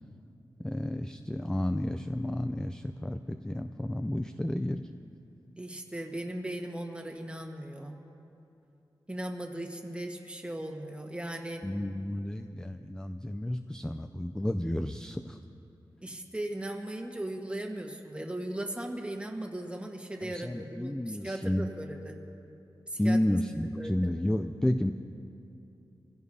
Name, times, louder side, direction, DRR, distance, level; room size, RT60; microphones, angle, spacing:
voice 1, 0.6-4.8 11.6-15.4 20.2-21.7 23.0-24.9, left 1 dB, 10° left, 8 dB, 0.4 m, -31 dB
voice 2, 5.6-8.0 9.1-11.6 16.0-22.2 22.9-23.2 23.8-23.9, right 1 dB, 15° right, 2 dB, 1.4 m, -38 dB
26.0 x 16.0 x 2.8 m, 2.8 s
wide cardioid pair, 120°, 9 cm